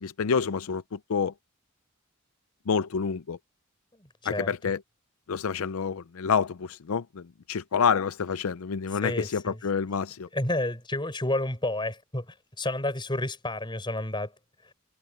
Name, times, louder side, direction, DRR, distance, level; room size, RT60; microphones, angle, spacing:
voice 1, 0.0-1.3 2.7-3.4 4.3-4.8 5.3-10.3, left 6 dB, 80° left, 0.5 m, -28 dB
voice 2, 4.0-4.5 9.0-9.6 10.3-14.3, left 1 dB, 20° left, 5.4 m, -30 dB
head